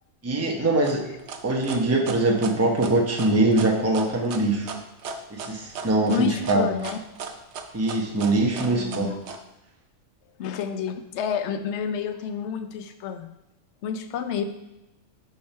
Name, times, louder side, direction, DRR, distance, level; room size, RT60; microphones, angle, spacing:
voice 1, 0.2-1.1 1.4-4.7 5.3-6.6 7.7-9.1, right 2 dB, 15° right, 1 dB, 0.8 m, -22 dB
sound 1, 0.8-9.4, right 5 dB, 65° right, 0.9 m, -36 dB
voice 2, 6.1-7.0 8.7-9.4 10.4-13.3 13.8-14.4, left 8 dB, 65° left, 8 dB, 0.9 m, -30 dB
5.7 x 5.2 x 5.6 m, 0.97 s
omnidirectional pair, 1.3 m